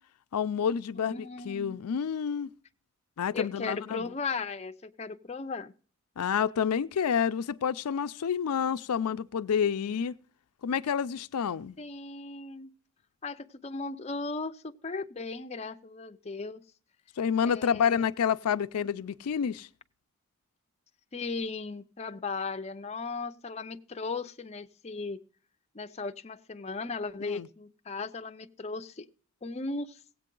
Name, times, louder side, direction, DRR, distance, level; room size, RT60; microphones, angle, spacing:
voice 1, 0.3-2.5 3.2-4.1 6.2-10.2 10.6-11.8 17.2-19.7 27.3-27.5, left 7 dB, 90° left, 0.4 m, -29 dB
voice 2, 1.0-1.7 3.3-5.7 11.8-12.7 13.2-16.6 17.5-18.1 21.1-25.2 25.7-29.1 29.4-30.0, left 4 dB, 30° left, 0.5 m, -37 dB
17.0 x 8.3 x 3.8 m
head